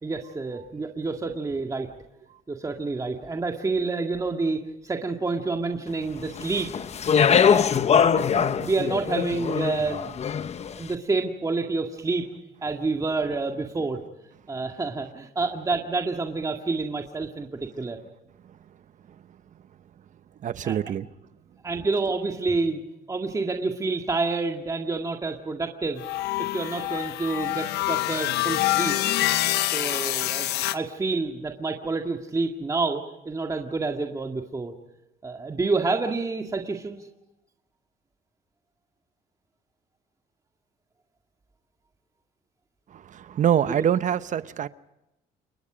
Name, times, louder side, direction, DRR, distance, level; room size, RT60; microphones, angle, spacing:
voice 1, 0.0-1.9 2.5-6.7 7.4-7.7 8.0-10.1 10.7-12.3 12.6-14.0 14.5-18.0 20.6-20.8 21.6-22.8 23.1-26.0 26.4-29.0 29.7-34.7 35.2-37.1 43.6-43.8, right 3 dB, 20° right, 2.1 m, -28 dB
Speech, 6.4-10.7, left 7 dB, 40° left, 1.0 m, -22 dB
voice 2, 20.4-21.1 42.9-44.7, right 9 dB, 50° right, 0.9 m, -25 dB
sound 1, 26.0-30.8, left 15 dB, 80° left, 1.1 m, -26 dB
29.0 x 22.5 x 5.1 m
cardioid pair, 110°, 17 cm